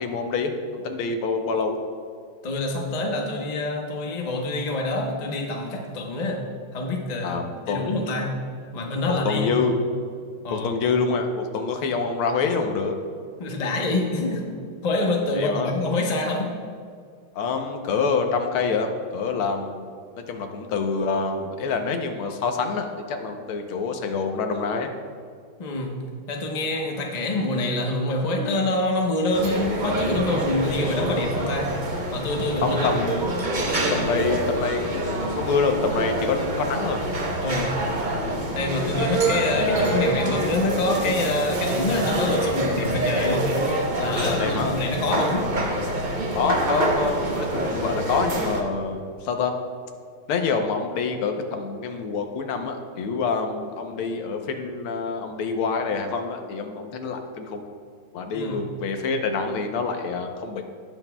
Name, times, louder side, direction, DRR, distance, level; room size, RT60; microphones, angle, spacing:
voice 1, 0.0-1.8 7.2-7.9 9.1-9.8 10.5-13.0 15.3-15.8 17.3-19.9 20.3-24.9 32.6-33.3 33.9-37.0 44.2-44.8 46.3-49.5 50.3-57.6 58.1-60.6, left 4 dB, 80° left, 5 dB, 1.7 m, -26 dB
voice 2, 2.4-6.4 6.7-7.4 7.7-8.3 8.7-9.5 10.4-10.7 13.4-14.4 14.8-16.5 25.6-25.9 26.3-31.7 32.1-32.9 37.4-37.7 38.5-43.5 44.0-45.5 58.3-58.6, left 2 dB, 40° left, 1 dB, 0.5 m, -26 dB
sound 1, 29.3-48.6, right 1 dB, 65° right, 0.4 m, -26 dB
17.5 x 6.2 x 2.2 m, 2.1 s
omnidirectional pair, 2.3 m